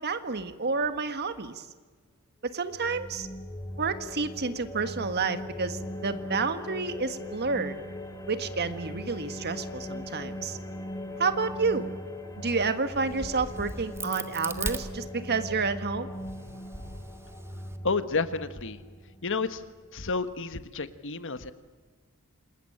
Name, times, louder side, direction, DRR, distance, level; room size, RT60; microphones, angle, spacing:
voice 1, 0.0-1.6 2.5-3.3 3.8-7.8 8.3-10.6 11.2-11.9 12.4-16.1, right 4 dB, 50° right, 10 dB, 1.6 m, -30 dB
sound 1, 2.5-19.9, left 1 dB, 15° left, 3.0 m, -40 dB
Crack, 12.9-15.6 16.1-17.8, right 2 dB, 10° right, 1.6 m, -38 dB
voice 2, 17.8-18.8 19.2-19.6 19.9-21.5, left 4 dB, 60° left, 11 dB, 1.4 m, -30 dB
28.0 x 20.0 x 8.8 m, 1.4 s
head